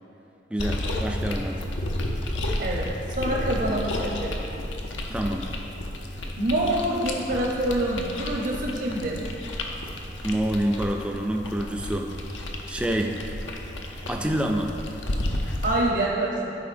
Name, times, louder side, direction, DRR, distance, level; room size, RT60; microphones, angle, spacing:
voice 1, 0.5-1.6 5.1-5.5 10.2-12.1 12.7-13.2 14.1-14.7, right 1 dB, 5° right, 1 dB, 0.3 m, -27 dB
sound 1, 0.6-15.8, left 1 dB, 90° left, 0.7 m, -32 dB
voice 2, 2.6-4.6 6.4-9.2 15.6-16.5, right 1 dB, 70° right, -4 dB, 0.8 m, -26 dB
11.5 x 4.9 x 2.6 m, 2.9 s
head